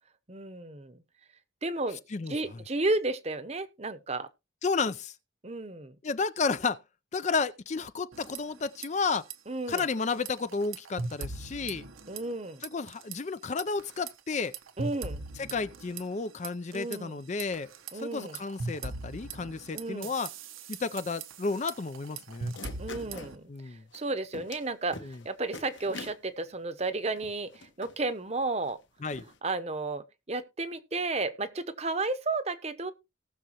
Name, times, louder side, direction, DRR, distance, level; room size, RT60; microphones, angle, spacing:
voice 1, 0.3-1.0 1.6-2.0 2.3-4.3 5.4-6.0 9.5-9.8 12.1-12.6 14.8-15.2 16.7-17.2 17.9-18.4 19.7-20.1 22.8-23.5 23.9-28.8 29.4-32.9, right 2 dB, 30° right, 0.9 m, -33 dB
voice 2, 4.6-5.1 6.0-6.8 7.1-9.2 9.7-11.9 12.6-14.5 15.4-20.3 20.7-22.5 23.5-23.8 25.0-25.2 29.0-29.2, left 4 dB, 35° left, 0.4 m, -32 dB
sound 1, 8.1-8.9 9.1-9.3 9.7-12.4 12.6-13.2 13.6-17.0 17.4-23.4, right 3 dB, 90° right, 1.2 m, -40 dB
sound 2, 22.3-23.3 23.9-24.0 24.3-24.7 24.9-25.2 25.5-26.2 26.8-26.9 27.2-27.9 28.7-28.8 29.1-29.4, left 3 dB, 70° left, 1.6 m, -44 dB
19.0 x 6.6 x 3.0 m
head